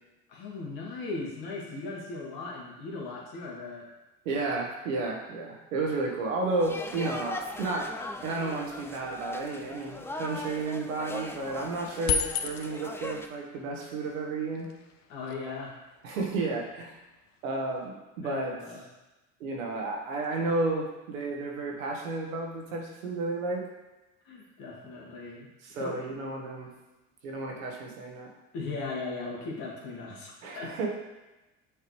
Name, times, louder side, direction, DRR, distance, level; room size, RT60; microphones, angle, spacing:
voice 1, 0.3-3.9 15.1-15.7 18.2-18.8 24.2-25.5 25.8-26.0 28.5-30.7, left 3 dB, 65° left, -3 dB, 1.9 m, -38 dB
voice 2, 4.2-7.9 8.2-14.7 16.0-17.0 17.4-18.5 19.4-23.6 25.6-26.7 27.2-28.3 30.4-30.9, right 3 dB, 90° right, 0 dB, 1.2 m, -32 dB
sound 1, 6.6-13.3, left 2 dB, 5° left, 0.4 m, -40 dB
sound 2, 12.1-12.9 14.2-14.3 14.5-17.9, left 8 dB, 45° left, 0.6 m, -34 dB
6.4 x 4.8 x 3.1 m, 1.0 s
hypercardioid pair, 75°, 39 cm